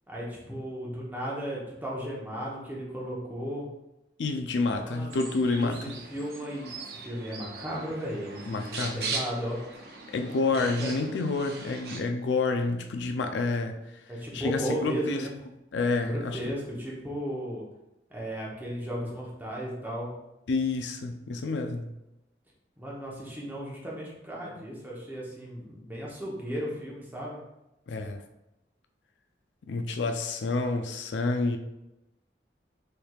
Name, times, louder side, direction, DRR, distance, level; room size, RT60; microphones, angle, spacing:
voice 1, 0.1-3.7 4.7-5.2 5.6-9.6 10.6-11.0 14.1-15.3 16.0-17.6 18.1-20.1 22.8-27.4, equal, 10° right, -4 dB, 0.9 m, -35 dB
voice 2, 4.2-5.9 8.5-9.1 10.1-13.8 14.3-15.3 15.7-16.4 20.5-21.9 27.9-28.2 29.7-31.6, left 3 dB, 90° left, 6 dB, 0.4 m, -29 dB
sound 1, 5.1-12.0, right 4 dB, 60° right, 0.6 m, -39 dB
4.4 x 3.4 x 2.3 m, 0.92 s
head